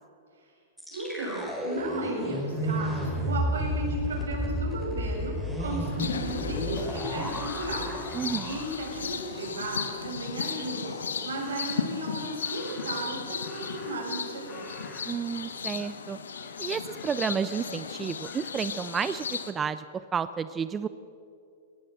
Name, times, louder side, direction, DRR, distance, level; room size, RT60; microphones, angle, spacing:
sound 1, 0.8-9.8 10.1-10.3 10.6-11.0, equal, ahead, 5.5 m, -32 dB
voice 1, 0.9-8.0 8.4-11.0 11.2-14.7, right 1 dB, 85° right, 0 dB, 7.2 m, -35 dB
Crow, 5.8-7.5 11.3-12.0 12.4-14.2 14.4-15.5 15.8-16.0 16.3-17.6 18.2-18.6, left 2 dB, 15° left, 7.5 m, -51 dB
sound 2, 6.0-19.5, left 6 dB, 90° left, 1.5 m, -36 dB
voice 2, 8.1-8.6 15.1-16.2 16.6-19.8 20.1-20.9, right 6 dB, 20° right, 14 dB, 0.6 m, -31 dB
20.0 x 18.5 x 7.7 m, 2.5 s
hypercardioid pair, 120°, 0 cm